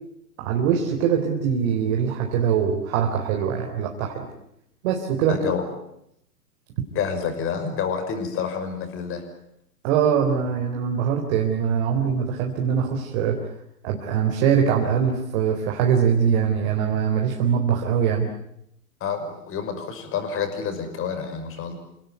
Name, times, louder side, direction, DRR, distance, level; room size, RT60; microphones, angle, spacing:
voice 1, 0.4-4.3 4.8-5.5 9.8-13.4 13.8-18.3, right 7 dB, 45° right, 2 dB, 4.0 m, -22 dB
voice 2, 5.3-5.7 6.9-9.2 19.0-21.7, left 6 dB, 25° left, 7 dB, 5.9 m, -28 dB
28.5 x 18.0 x 9.6 m, 0.78 s
hypercardioid pair, 120°, 47 cm